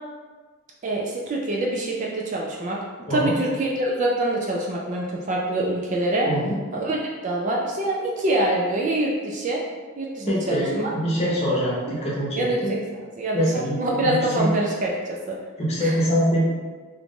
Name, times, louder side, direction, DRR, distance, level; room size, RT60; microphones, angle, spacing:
voice 1, 0.8-2.8 3.1-6.3 6.7-9.6 10.0-10.9 12.4-12.8 13.2-13.5 13.8-15.4 15.8-15.9, right 1 dB, 35° right, -2 dB, 0.3 m, -25 dB
voice 2, 6.2-6.6 10.3-12.7 13.3-14.5 15.6-16.4, equal, 30° left, -6 dB, 0.8 m, -24 dB
2.9 x 2.5 x 3.5 m, 1.4 s
head